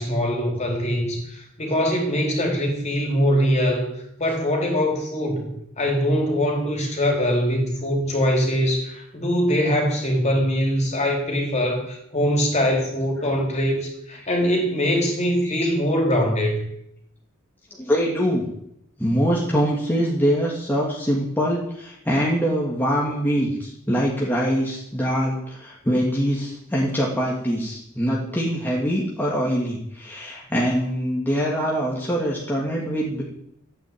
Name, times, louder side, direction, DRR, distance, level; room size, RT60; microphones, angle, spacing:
voice 1, 0.0-3.9 4.2-16.7, equal, 35° left, 1 dB, 4.2 m, -22 dB
voice 2, 17.8-18.5 19.0-33.2, equal, 10° left, -4 dB, 2.7 m, -23 dB
14.0 x 9.3 x 9.0 m, 0.74 s
head